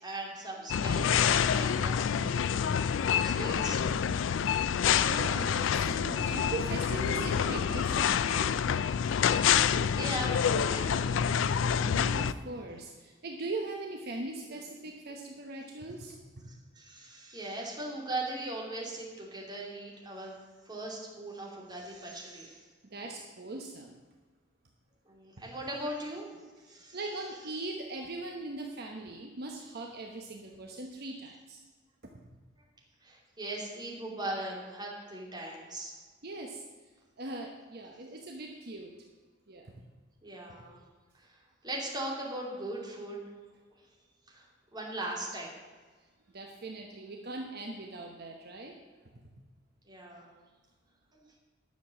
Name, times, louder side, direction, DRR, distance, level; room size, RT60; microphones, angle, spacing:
voice 1, 0.0-2.0 2.5-2.7 3.1-3.8 9.9-11.2 16.8-20.3 20.7-22.6 25.1-26.3 26.7-27.0 33.0-36.0 40.2-40.8 41.2-41.4 41.6-43.2 44.3-44.4 44.7-45.5 49.9-50.3 51.1-51.2, right 1 dB, 25° right, -3 dB, 2.7 m, -39 dB
sound 1, 0.7-12.3, left 8 dB, 75° left, 0.4 m, -27 dB
voice 2, 3.9-4.4 4.9-8.5 9.0-9.1 10.8-11.2 11.8-16.5 22.8-24.0 26.4-31.6 36.2-36.6 37.2-38.9 39.5-39.7 46.3-48.8 49.1-49.2, right 2 dB, 55° right, 1 dB, 1.0 m, -41 dB
10.5 x 7.0 x 7.0 m, 1.4 s
head